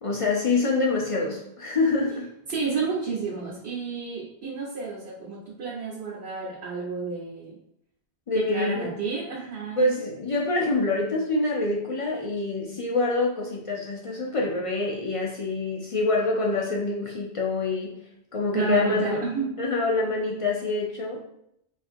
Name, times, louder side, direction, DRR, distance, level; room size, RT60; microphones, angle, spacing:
voice 1, 0.0-2.3 8.3-8.9 9.8-18.0 18.3-19.2 19.6-21.2, left 3 dB, 45° left, -2 dB, 0.4 m, -26 dB
voice 2, 2.5-7.6 8.3-9.9 18.5-19.5, right 5 dB, 75° right, -6 dB, 1.0 m, -30 dB
3.8 x 2.5 x 2.5 m, 0.75 s
omnidirectional pair, 1.1 m